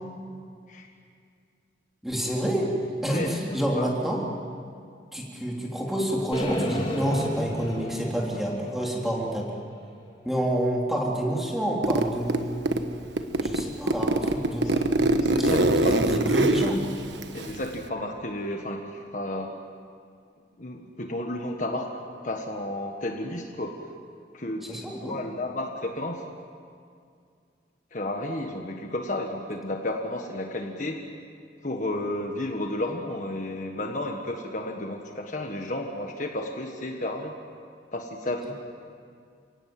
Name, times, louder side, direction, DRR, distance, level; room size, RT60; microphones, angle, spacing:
voice 1, 2.0-4.2 5.1-9.5 10.2-12.6 13.4-14.9 15.4-16.8 24.7-25.2, right 1 dB, ahead, -3 dB, 3.4 m, -28 dB
voice 2, 3.1-3.9 14.6-14.8 15.2-16.8 17.3-19.5 20.6-21.9 22.2-23.7 24.3-26.2 27.9-31.0 31.6-37.3 37.9-38.5, left 1 dB, 40° left, 2 dB, 1.6 m, -32 dB
sound 1, 6.3-10.4, equal, 25° left, 2.4 m, -33 dB
Zipper (clothing), 11.8-12.9 13.2-17.9, right 2 dB, 70° right, 1.3 m, -24 dB
29.5 x 18.0 x 7.8 m, 2.3 s
head